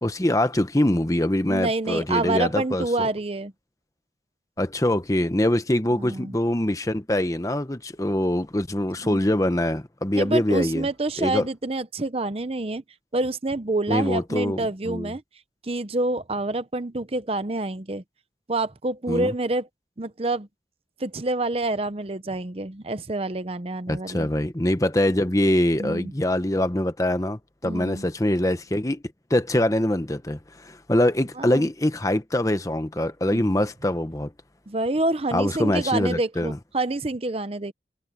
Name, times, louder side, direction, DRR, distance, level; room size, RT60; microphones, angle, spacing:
voice 1, 0.0-3.1 4.6-10.9 11.2-11.5 13.9-15.1 19.1-19.3 23.9-29.0 29.3-34.3 35.3-36.6, left 1 dB, 20° left, 1.0 m, -24 dB
voice 2, 1.5-3.5 6.0-6.3 9.0-9.2 10.2-12.8 13.1-15.2 15.6-18.0 18.5-19.7 20.0-20.5 21.0-24.3 25.8-26.1 27.6-28.0 31.4-31.7 33.3-33.5 34.7-37.7, right 2 dB, 35° right, 0.7 m, -27 dB
head